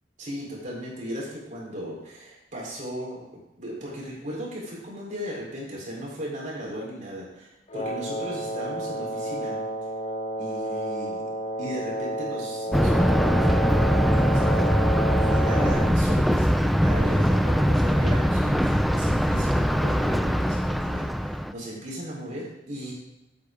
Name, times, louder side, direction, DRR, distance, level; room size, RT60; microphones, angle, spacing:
voice 1, 0.2-3.2 3.6-9.6 10.4-11.2 11.6-13.6 14.1-22.9, equal, 45° right, -4 dB, 4.1 m, -37 dB
Wind instrument woodwind instrument, 7.7-16.0, right 1 dB, 35° left, 0.9 m, -30 dB
Thunder, 12.7-21.5, equal, ahead, 0.4 m, -22 dB
15.0 x 8.6 x 3.8 m, 0.92 s
head